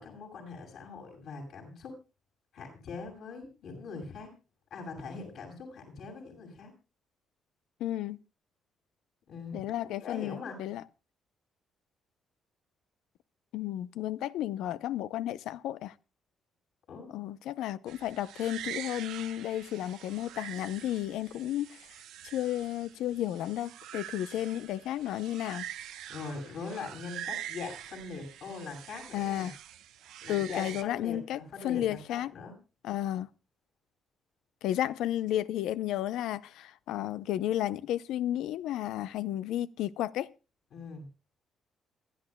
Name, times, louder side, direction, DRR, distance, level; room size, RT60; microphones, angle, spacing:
voice 1, 0.0-2.0 2.5-4.3 4.7-6.7 9.3-10.6 16.9-17.1 26.1-29.5 30.2-32.5 40.7-41.0, left 4 dB, 70° left, 7.1 m, -42 dB
voice 2, 7.8-8.2 9.5-10.8 13.5-15.9 17.1-21.9 22.2-25.6 29.1-29.5 30.3-32.3 32.8-33.3 34.6-40.3, left 12 dB, 85° left, 0.5 m, -33 dB
sound 1, 17.9-30.8, right 11 dB, 90° right, 1.0 m, -44 dB
27.0 x 10.5 x 2.2 m
cardioid pair, 90°, 0 cm